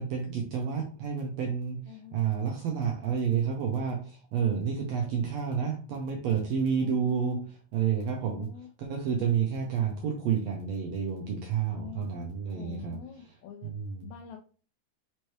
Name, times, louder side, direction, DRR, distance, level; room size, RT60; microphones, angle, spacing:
voice 1, 0.0-8.5 8.8-13.3 13.6-14.1, right 7 dB, 75° right, 1 dB, 1.5 m, -30 dB
voice 2, 1.9-2.2 4.7-5.2 6.8-7.5 8.2-8.7 11.7-13.8 14.0-14.4, left 8 dB, 85° left, 2 dB, 1.6 m, -46 dB
5.5 x 3.0 x 3.1 m, 0.40 s
omnidirectional pair, 3.7 m